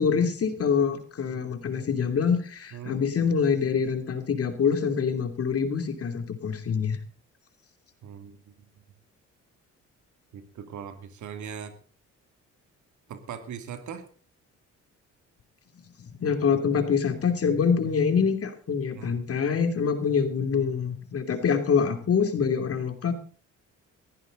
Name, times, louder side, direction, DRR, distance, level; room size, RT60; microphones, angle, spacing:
voice 1, 0.0-7.0 16.2-23.1, left 6 dB, 50° left, 8 dB, 2.9 m, -25 dB
voice 2, 2.7-3.0 8.0-8.4 10.3-11.7 13.1-14.0 18.9-19.2, right 7 dB, 75° right, 8 dB, 2.6 m, -39 dB
18.5 x 14.5 x 3.9 m, 0.39 s
cardioid pair, 90°, 30 cm